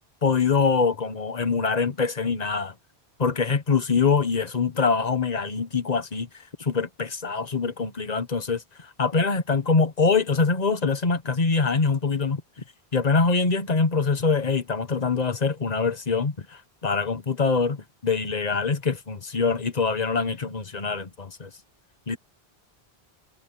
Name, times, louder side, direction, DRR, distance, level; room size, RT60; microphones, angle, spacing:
voice 1, 0.2-2.7 3.2-6.3 6.6-8.6 9.0-12.4 12.9-21.5 22.1-22.2, left 4 dB, 40° left, 1.4 m, -24 dB
omnidirectional pair, 1.0 m